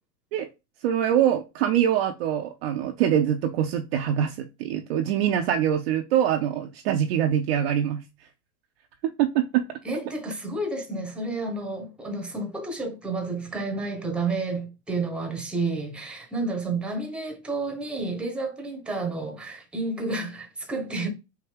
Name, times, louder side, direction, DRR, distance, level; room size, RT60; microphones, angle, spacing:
voice 1, 0.8-8.0 9.0-9.6, right 10 dB, 45° right, 0.4 m, -24 dB
voice 2, 9.8-21.1, right 3 dB, ahead, 0.7 m, -30 dB
4.5 x 2.7 x 3.2 m
hypercardioid pair, 135°, 47 cm